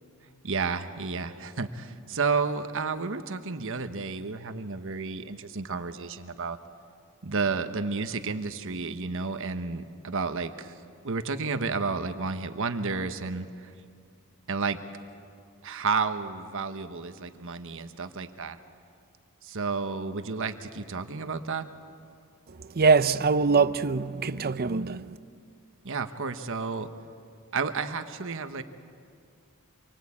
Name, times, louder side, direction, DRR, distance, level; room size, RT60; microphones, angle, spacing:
voice 1, 0.4-6.6 7.2-10.7 11.0-13.7 14.5-14.8 15.6-18.6 19.4-21.7 25.8-26.9 27.5-28.6, right 4 dB, 60° right, 1.2 m, -31 dB
voice 2, 22.8-25.0, right 4 dB, 45° right, 0.6 m, -23 dB
26.5 x 23.5 x 8.6 m
head